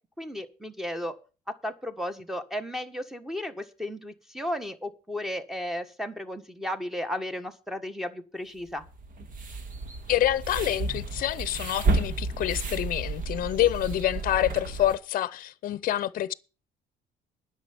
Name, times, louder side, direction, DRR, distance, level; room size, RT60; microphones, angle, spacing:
voice 1, 0.2-1.2 1.5-8.8, left 1 dB, ahead, 1.5 m, -34 dB
sound 1, 8.8-14.9, right 3 dB, 55° right, 1.8 m, -31 dB
voice 2, 10.1-16.3, left 12 dB, 55° left, 0.7 m, -27 dB
10.5 x 6.9 x 8.2 m
cardioid pair, 110°, 17 cm